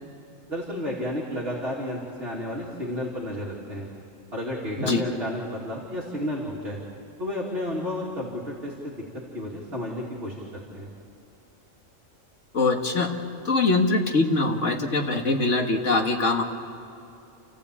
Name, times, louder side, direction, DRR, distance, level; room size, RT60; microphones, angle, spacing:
voice 1, 0.5-3.9 4.3-6.8 7.2-9.0 9.3-10.9, left 1 dB, 50° right, -5 dB, 3.3 m, -32 dB
voice 2, 12.5-13.1 13.5-16.4, left 3 dB, 70° left, 3 dB, 2.1 m, -23 dB
29.5 x 14.5 x 8.6 m, 2.8 s
omnidirectional pair, 1.3 m